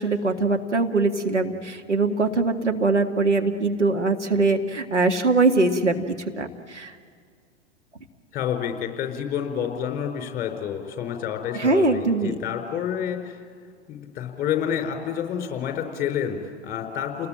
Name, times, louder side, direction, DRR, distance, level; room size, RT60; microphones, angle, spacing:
voice 1, 0.0-6.0 6.4-6.9 11.5-12.4, right 3 dB, 85° right, 3 dB, 2.0 m, -22 dB
voice 2, 8.3-13.4 13.9-17.3, left 8 dB, 25° left, 4 dB, 4.5 m, -29 dB
29.5 x 20.5 x 8.9 m, 2.1 s
figure-of-eight pair, 100°, 35 cm